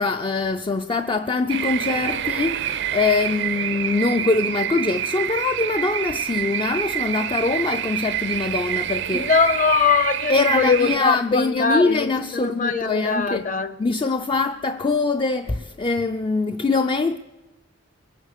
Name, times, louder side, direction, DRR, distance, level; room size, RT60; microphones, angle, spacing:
voice 1, 0.0-9.3 10.3-13.5 13.8-17.2, left 3 dB, 25° left, 0.4 m, -23 dB
sound 1, 1.5-11.0, right 10 dB, 65° right, 0.6 m, -27 dB
voice 2, 9.1-13.7, left 5 dB, 40° left, 0.9 m, -22 dB
22.5 x 9.1 x 6.6 m
head